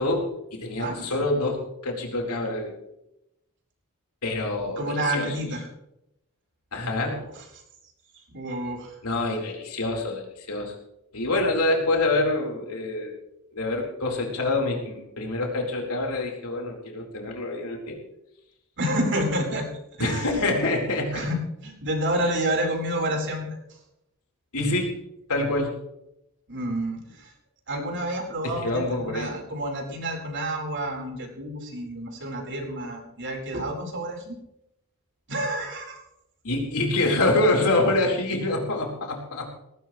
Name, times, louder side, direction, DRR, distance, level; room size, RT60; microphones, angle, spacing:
voice 1, 0.0-2.7 4.2-5.4 6.7-7.2 9.0-10.8 11.1-13.2 13.5-18.0 20.0-21.3 24.5-24.9 25.3-25.7 28.4-29.3 36.4-39.5, left 2 dB, 85° left, 1 dB, 4.3 m, -26 dB
voice 2, 0.8-1.2 4.8-5.7 8.3-8.9 18.8-19.7 20.0-20.5 21.1-23.4 26.5-27.3 27.7-34.4 35.3-36.0, right 1 dB, 55° right, 1 dB, 4.4 m, -29 dB
18.5 x 17.0 x 3.2 m, 0.83 s
head